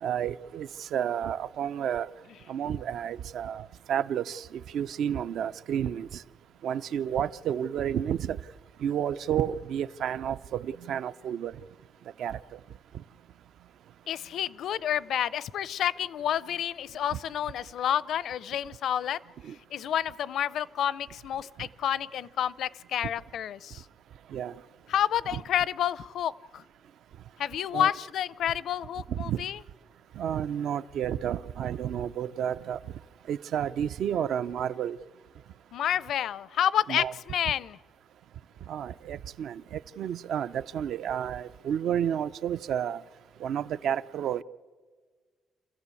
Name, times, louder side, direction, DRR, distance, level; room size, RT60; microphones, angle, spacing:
voice 1, 0.0-2.1 2.5-4.5 4.7-6.2 6.6-8.4 8.8-11.5 12.2-12.4 17.1-17.2 19.4-19.5 21.6-21.7 24.3-24.5 27.7-27.9 29.1-29.4 30.2-32.8 33.3-35.0 36.9-37.1 38.7-43.0 43.4-44.4, right 9 dB, 75° right, 14 dB, 0.6 m, -31 dB
voice 2, 14.1-19.2 19.7-23.8 24.9-26.6 27.4-29.6 35.7-37.8, left 10 dB, 70° left, 20 dB, 0.6 m, -29 dB
27.0 x 15.0 x 8.4 m, 1.5 s
cardioid pair, 145°, 0 cm